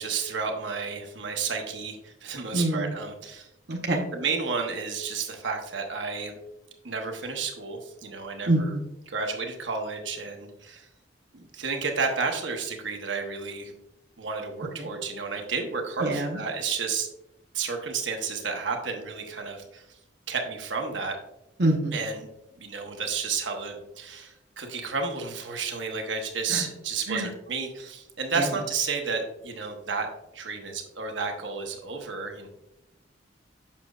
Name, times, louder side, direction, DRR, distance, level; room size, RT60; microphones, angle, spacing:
voice 1, 0.0-3.5 4.1-6.3 6.8-8.7 9.1-10.9 11.3-13.7 14.2-17.1 17.5-19.9 20.3-21.2 21.9-22.3 22.6-30.1 30.3-32.5, right 5 dB, 90° right, 3 dB, 1.1 m, -31 dB
voice 2, 2.5-2.9 3.7-4.0 8.5-8.8 14.8-14.9 16.0-16.4 21.6-22.0 26.5-26.7 27.1-27.3 28.4-28.5, right 1 dB, 65° right, 0 dB, 0.9 m, -25 dB
7.3 x 6.2 x 2.4 m, 0.89 s
head